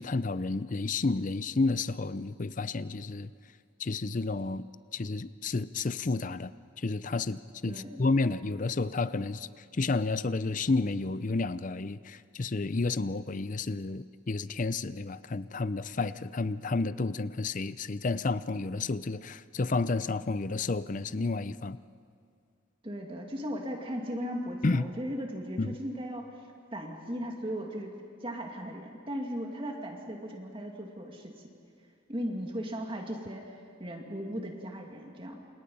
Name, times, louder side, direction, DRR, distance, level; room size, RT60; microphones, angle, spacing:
voice 1, 0.0-3.3 3.8-4.7 4.9-6.5 6.8-9.5 9.8-21.8 24.6-24.9 25.6-25.7, left 3 dB, 40° left, 15 dB, 0.5 m, -31 dB
voice 2, 7.7-8.0 22.8-26.3 26.7-27.9 28.2-31.4 32.1-35.4, equal, 25° right, 1 dB, 2.3 m, -37 dB
28.5 x 28.5 x 5.5 m, 2.3 s
head